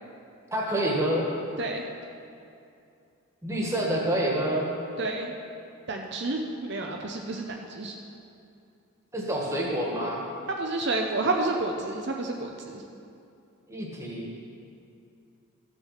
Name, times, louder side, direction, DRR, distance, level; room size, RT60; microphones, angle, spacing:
voice 1, 0.5-1.3 3.4-4.7 9.1-10.2 13.7-14.3, right 1 dB, 15° right, -3 dB, 1.5 m, -27 dB
voice 2, 5.0-5.3 5.9-7.9 10.6-12.8, right 2 dB, 50° right, 1 dB, 0.7 m, -30 dB
14.0 x 6.1 x 5.7 m, 2.5 s
head